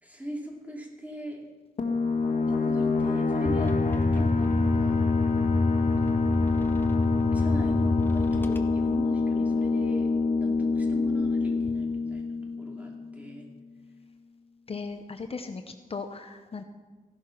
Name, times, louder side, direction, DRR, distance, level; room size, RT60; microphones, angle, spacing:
voice 1, 0.0-1.4 2.5-5.4 7.3-10.1 10.4-13.5, right 1 dB, 10° right, 0 dB, 2.7 m, -40 dB
sound 1, 1.8-13.1, left 4 dB, 70° left, 1.5 m, -26 dB
sound 2, 3.5-9.0, left 2 dB, 15° left, 1.1 m, -28 dB
voice 2, 14.7-15.6 15.9-16.6, left 4 dB, 45° left, 6 dB, 0.8 m, -37 dB
15.5 x 11.5 x 5.8 m, 1.3 s
wide cardioid pair, 150°, 14 cm